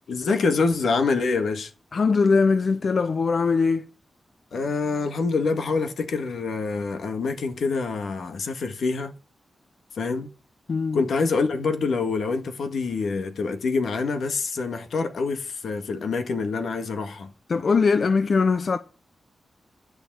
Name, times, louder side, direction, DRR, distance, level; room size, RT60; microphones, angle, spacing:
voice 1, 0.1-1.7 4.5-9.1 9.9-10.3 10.9-17.3, left 4 dB, 80° left, 1.7 m, -26 dB
voice 2, 1.9-3.9 10.7-11.0 17.5-18.8, left 4 dB, 45° left, 0.6 m, -21 dB
10.5 x 6.6 x 8.9 m
wide cardioid pair, 175°, 0 cm